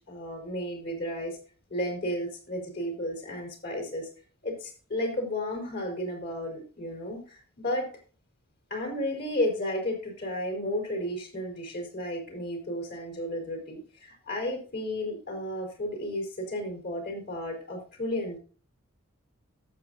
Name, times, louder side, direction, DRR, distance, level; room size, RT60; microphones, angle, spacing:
voice 1, 0.0-1.4 1.7-4.1 4.4-7.9 8.7-18.4, left 1 dB, 45° left, 2 dB, 4.4 m, -33 dB
18.0 x 7.4 x 2.6 m, 0.38 s
head